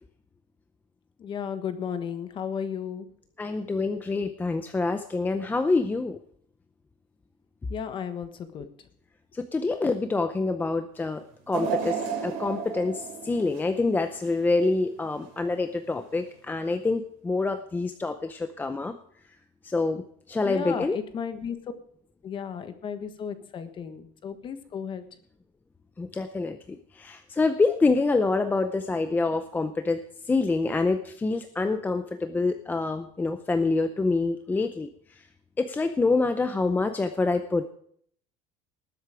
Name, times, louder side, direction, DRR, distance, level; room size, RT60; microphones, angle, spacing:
voice 1, 1.2-3.0 7.7-8.7 20.4-21.6 22.2-25.0, left 7 dB, 30° left, 10 dB, 1.4 m, -34 dB
voice 2, 3.4-6.2 9.3-18.9 19.6-20.0 20.3-21.0 26.0-26.6 27.0-34.9 35.6-37.7, left 3 dB, 10° left, 8 dB, 0.6 m, -26 dB
sound 1, 11.5-14.7 15.1-15.2 16.3-16.4, right 6 dB, 65° right, 5.3 m, -33 dB
19.5 x 8.1 x 5.0 m, 0.62 s
cardioid pair, 160°, 16 cm